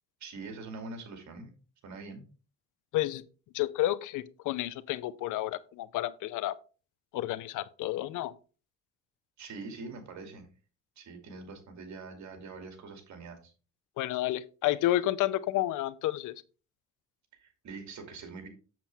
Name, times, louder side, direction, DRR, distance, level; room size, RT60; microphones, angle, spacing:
voice 1, 0.2-1.5 1.8-2.3 9.4-10.5 11.0-13.5 17.3-18.5, right 3 dB, 65° right, 2.5 m, -44 dB
voice 2, 3.5-6.5 7.1-8.3 14.0-16.4, left 14 dB, 90° left, 0.6 m, -30 dB
7.6 x 7.2 x 3.4 m
cardioid pair, 90°, 30 cm